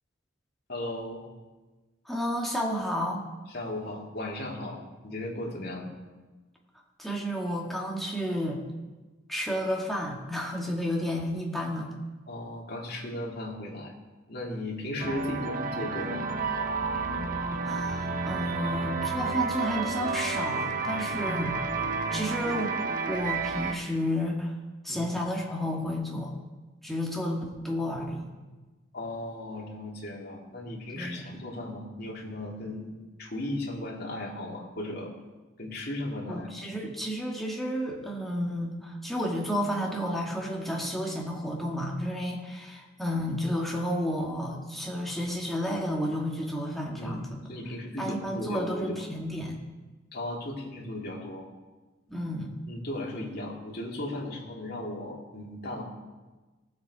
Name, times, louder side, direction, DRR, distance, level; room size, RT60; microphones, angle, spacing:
voice 1, 0.7-1.2 3.5-5.9 12.3-13.9 14.3-16.3 24.9-25.0 28.9-35.1 35.6-36.5 47.0-49.0 50.1-51.5 52.7-55.8, left 1 dB, 50° left, -3 dB, 2.5 m, -36 dB
voice 2, 2.1-3.3 7.0-8.6 9.3-11.9 17.6-21.6 22.1-22.7 23.0-24.6 24.8-26.3 26.8-28.3 31.0-31.3 36.3-47.3 48.0-49.6 52.1-52.5, equal, ahead, -2 dB, 2.0 m, -31 dB
sound 1, 15.0-23.7, right 4 dB, 40° right, 0.9 m, -31 dB
18.5 x 7.9 x 4.8 m, 1.2 s
head